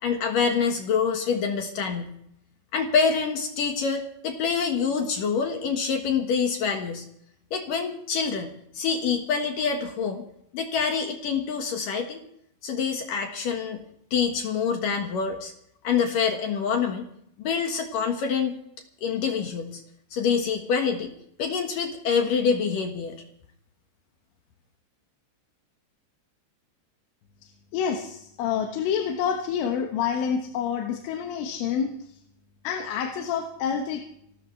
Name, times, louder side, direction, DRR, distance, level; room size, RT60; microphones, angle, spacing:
voice 1, 0.0-2.1 2.7-7.0 7.5-10.2 10.5-12.2 12.6-13.8 14.1-15.5 15.8-17.0 17.4-18.6 19.0-19.8 20.1-21.1 21.4-23.2, left 6 dB, 60° left, 4 dB, 2.4 m, -26 dB
voice 2, 27.7-31.9 32.7-34.0, left 7 dB, 80° left, 3 dB, 3.8 m, -27 dB
28.5 x 13.5 x 3.3 m, 0.70 s
omnidirectional pair, 5.7 m